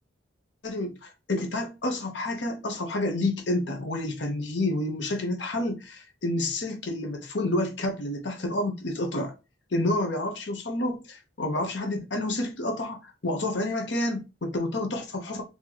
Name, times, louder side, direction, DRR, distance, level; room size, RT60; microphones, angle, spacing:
voice 1, 0.6-9.3 9.7-15.4, left 1 dB, 60° left, 0.9 m, -29 dB
4.3 x 2.9 x 2.9 m
head